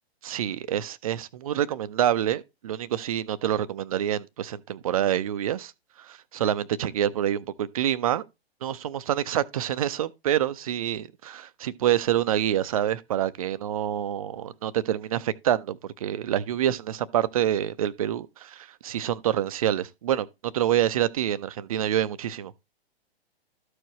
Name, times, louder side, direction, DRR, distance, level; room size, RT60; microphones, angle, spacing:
voice 1, 0.2-5.7 6.0-8.3 8.6-22.5, right 11 dB, 35° right, 0.4 m, -27 dB
13.0 x 4.7 x 3.0 m
figure-of-eight pair, 120°, 31 cm